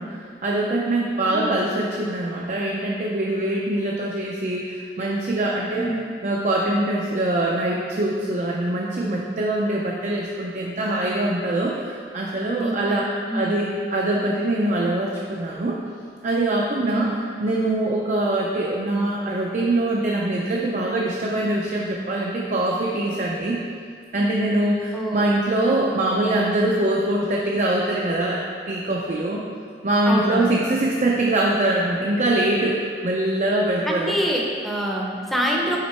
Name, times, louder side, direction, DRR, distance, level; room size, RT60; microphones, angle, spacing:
voice 1, 0.0-5.9 6.2-13.1 13.3-15.8 16.2-17.1 17.4-23.6 24.1-28.4 28.7-29.4 29.8-34.2, right 1 dB, 45° right, -3 dB, 0.5 m, -23 dB
voice 2, 1.3-1.6 5.7-6.1 12.6-13.0 13.3-13.7 16.9-17.2 24.9-25.4 30.0-30.6 33.9-35.8, right 1 dB, ahead, -2 dB, 0.7 m, -26 dB
5.8 x 4.3 x 4.3 m, 2.1 s
head